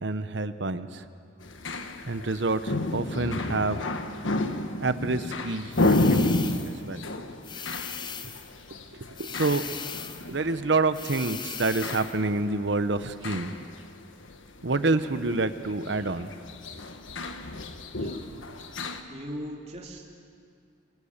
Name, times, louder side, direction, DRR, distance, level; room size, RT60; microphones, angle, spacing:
voice 1, 0.0-1.0 2.1-3.8 4.8-7.0 9.2-13.7 14.6-16.3, right 3 dB, 65° right, 11 dB, 1.0 m, -28 dB
sound 1, 1.4-19.0, left 2 dB, 80° left, 1.4 m, -31 dB
sound 2, 5.7-6.8 7.4-8.5 9.2-10.3 10.9-12.2, left 7 dB, 25° left, 0.8 m, -38 dB
voice 2, 19.1-20.0, equal, 35° right, -1 dB, 2.9 m, -38 dB
26.5 x 20.0 x 7.3 m, 2.3 s
head